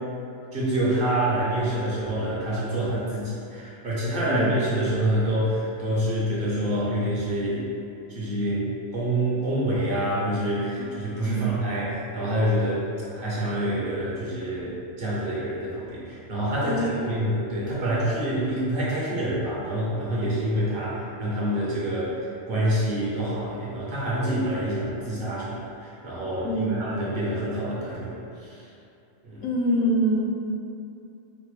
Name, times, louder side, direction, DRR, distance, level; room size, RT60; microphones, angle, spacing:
voice 1, 0.5-7.7 8.1-8.6 8.9-28.6 29.2-29.4, right 1 dB, 50° right, -7 dB, 0.8 m, -27 dB
voice 2, 4.3-4.6 11.3-11.5 16.6-16.9 26.4-26.8 29.4-30.2, equal, 85° left, -1 dB, 1.0 m, -25 dB
4.8 x 2.0 x 3.1 m, 2.6 s
omnidirectional pair, 1.3 m